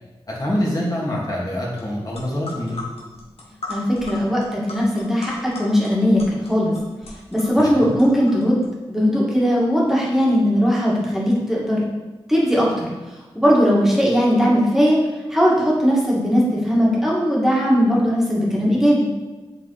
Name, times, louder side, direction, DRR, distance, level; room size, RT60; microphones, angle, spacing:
voice 1, 0.3-2.8 7.6-7.9, left 1 dB, 40° left, -5 dB, 2.2 m, -25 dB
sound 1, 1.8-1.9 2.1-8.7, left 3 dB, 85° left, 1.4 m, -37 dB
voice 2, 3.7-6.7 7.3-8.6 8.9-11.9 12.3-12.9 13.4-15.0 15.3-19.1, equal, 5° right, -5 dB, 1.9 m, -18 dB
7.4 x 4.0 x 4.0 m, 1.2 s
wide cardioid pair, 70°, 10 cm